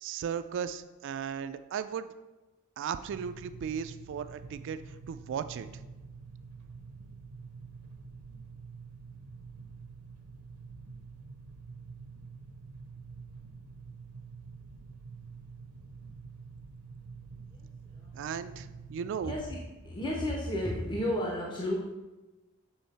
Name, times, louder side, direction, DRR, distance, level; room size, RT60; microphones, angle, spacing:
voice 1, 0.0-2.1 2.8-4.8 5.1-5.7 18.1-19.4, right 7 dB, 60° right, 11 dB, 0.3 m, -36 dB
sound 1, 3.1-19.5, right 4 dB, 85° right, 0.7 m, -47 dB
voice 2, 19.2-19.6 19.8-21.7, left 1 dB, 20° left, -2 dB, 0.7 m, -32 dB
7.1 x 3.5 x 4.1 m, 1.1 s
head